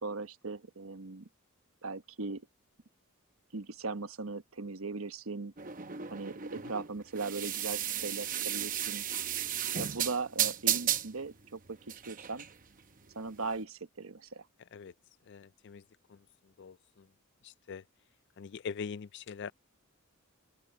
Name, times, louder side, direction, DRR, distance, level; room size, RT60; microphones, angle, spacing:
voice 1, 0.0-1.3 1.8-2.4 3.5-5.5 6.1-9.0 9.7-11.8 12.1-12.5 13.1-14.4, right 3 dB, 75° right, 1.1 m, -39 dB
sound 1, 5.6-13.6, right 10 dB, 40° right, 0.8 m, -34 dB
voice 2, 15.3-15.8 16.1-16.2 16.6-17.1 17.4-17.8 18.4-19.5, left 6 dB, 55° left, 0.4 m, -42 dB
open air
head